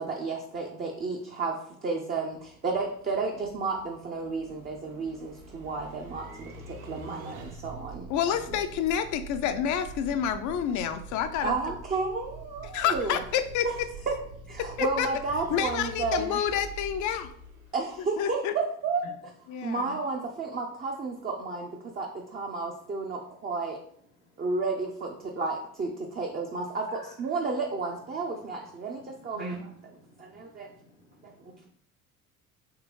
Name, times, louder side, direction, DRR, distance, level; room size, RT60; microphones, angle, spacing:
voice 1, 0.0-8.6 11.4-13.2 13.6-13.7 14.1-14.2 14.5-16.4 17.7-19.1 19.6-23.8 24.4-29.7 30.2-30.7 31.2-31.5, right 4 dB, 25° right, 0 dB, 0.6 m, -32 dB
sound 1, 2.3-18.3, right 2 dB, 80° right, 0.7 m, -45 dB
voice 2, 8.1-11.5 12.7-13.7 14.8-15.1 15.5-17.3 18.2-18.5 19.5-20.0, left 9 dB, 45° left, 10 dB, 0.5 m, -28 dB
voice 3, 30.0-31.7, left 2 dB, 80° left, 0 dB, 1.1 m, -55 dB
3.6 x 3.3 x 3.0 m, 0.63 s
hypercardioid pair, 65°, 41 cm